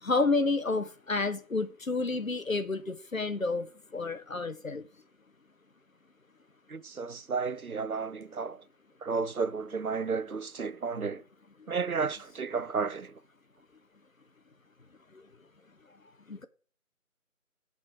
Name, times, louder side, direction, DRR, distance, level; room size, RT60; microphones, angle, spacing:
voice 1, 0.0-4.9 11.6-11.7 15.1-15.2 16.3-16.4, left 3 dB, 65° left, 1.1 m, -30 dB
voice 2, 6.7-8.6 9.0-11.2 11.7-13.2, right 5 dB, 80° right, 0.8 m, -32 dB
11.5 x 4.2 x 6.0 m
figure-of-eight pair, 180°, 43 cm